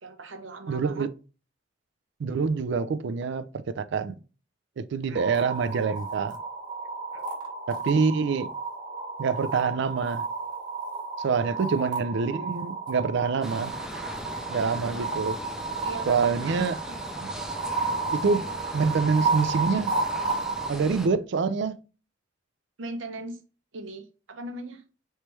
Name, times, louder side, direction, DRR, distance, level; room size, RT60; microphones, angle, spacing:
voice 1, 0.0-1.1 5.1-5.2 7.1-7.2 11.4-11.6 15.8-16.6 22.8-23.4 23.7-24.8, right 2 dB, 85° right, 0.8 m, -39 dB
voice 2, 0.7-1.1 2.2-4.2 4.8-6.4 7.7-8.5 9.2-10.3 11.2-13.7 14.5-15.4 16.1-16.8 17.2-17.3 18.1-18.5 18.7-19.9 20.7-21.8, right 5 dB, 65° right, 0.4 m, -26 dB
sound 1, 5.1-20.7, right 4 dB, 25° right, 1.1 m, -32 dB
sound 2, 13.4-21.1, equal, 5° right, 0.4 m, -39 dB
3.3 x 3.0 x 4.4 m
head